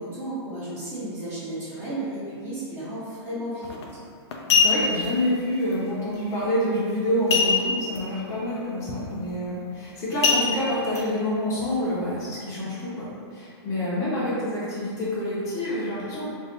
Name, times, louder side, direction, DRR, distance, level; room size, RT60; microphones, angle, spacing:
voice 1, 0.0-3.9, right 1 dB, 15° right, -10 dB, 0.7 m, -33 dB
sound 1, 3.6-3.8 4.3-5.1 7.3-8.0 8.3-8.4 8.9-9.1 10.2-11.0 11.6-11.7, left 5 dB, 70° left, 0.5 m, -22 dB
voice 2, 4.5-16.3, left 1 dB, 20° left, -8 dB, 0.8 m, -27 dB
2.6 x 2.4 x 3.6 m, 2.3 s
hypercardioid pair, 150°, 15 cm